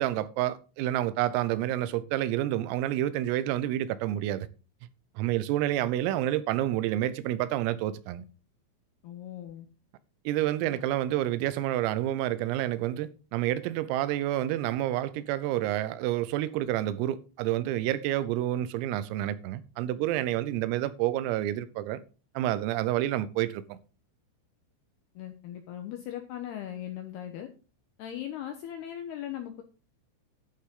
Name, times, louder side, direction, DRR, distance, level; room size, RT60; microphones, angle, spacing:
voice 1, 0.0-4.5 5.2-8.3 10.3-22.0 22.4-23.8, right 13 dB, 85° right, 3.5 m, -29 dB
voice 2, 9.0-9.7 10.6-10.8 25.1-27.5 28.0-29.6, left 11 dB, 75° left, 2.4 m, -39 dB
11.5 x 9.6 x 3.8 m
omnidirectional pair, 6.0 m